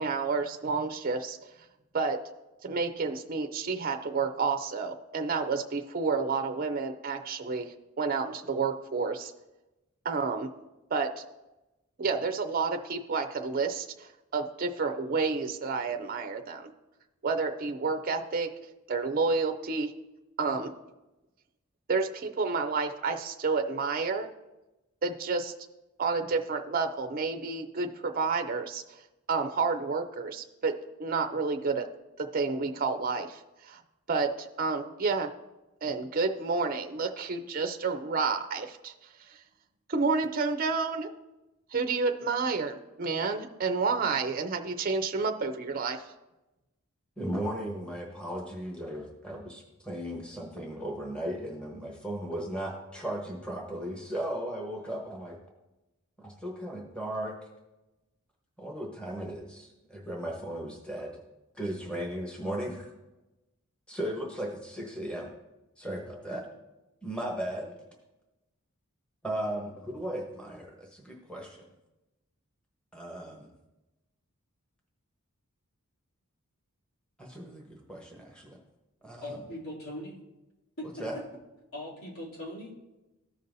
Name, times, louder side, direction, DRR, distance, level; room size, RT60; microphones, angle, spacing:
voice 1, 0.0-1.4 1.9-2.2 2.6-9.3 10.0-10.5 10.9-11.1 12.0-16.7 17.2-18.5 18.9-19.9 20.4-20.7 21.9-24.3 25.0-25.5 26.0-29.0 29.3-31.9 32.2-33.8 34.1-35.3 35.8-38.9 39.2-39.4 39.9-41.1 41.7-46.0, right 4 dB, 40° right, 5 dB, 0.5 m, -30 dB
voice 2, 47.2-55.4 56.2-57.3 58.6-61.2 61.5-62.9 63.9-65.3 65.8-66.4 67.0-67.7 69.2-71.6 72.9-73.5 77.2-78.6 79.0-79.4 81.0-81.2, right 1 dB, 5° left, -1 dB, 1.0 m, -36 dB
voice 3, 79.2-80.1 81.7-82.7, left 1 dB, 75° left, -7 dB, 3.0 m, -40 dB
14.5 x 5.4 x 2.6 m, 1.0 s
head